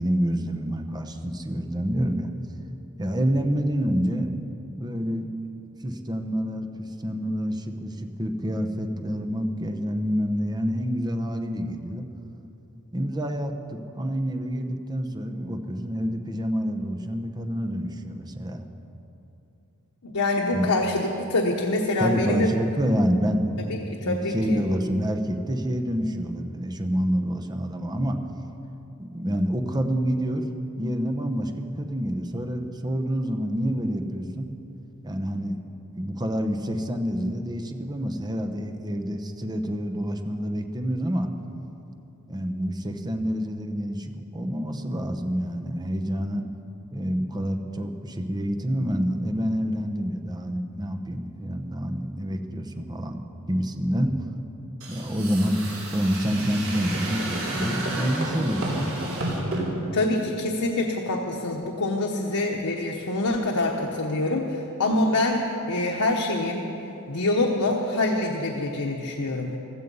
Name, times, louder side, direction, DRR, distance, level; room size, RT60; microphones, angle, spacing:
voice 1, 0.0-2.3 3.0-4.3 4.8-5.3 5.8-12.0 12.9-18.6 20.5-20.7 22.0-28.2 29.0-30.5 30.8-34.5 35.0-35.6 36.0-41.3 42.3-46.4 46.9-53.2 53.5-54.2 54.9-55.6 55.9-59.1, equal, 20° right, 5 dB, 0.9 m, -27 dB
voice 2, 20.0-22.5 23.7-24.6 59.9-65.4 65.7-66.7 67.1-69.6, left 2 dB, 85° left, 0 dB, 1.1 m, -25 dB
sound 1, 54.8-59.6, right 1 dB, 65° right, 3.7 m, -31 dB
16.0 x 14.0 x 5.5 m, 2.9 s
head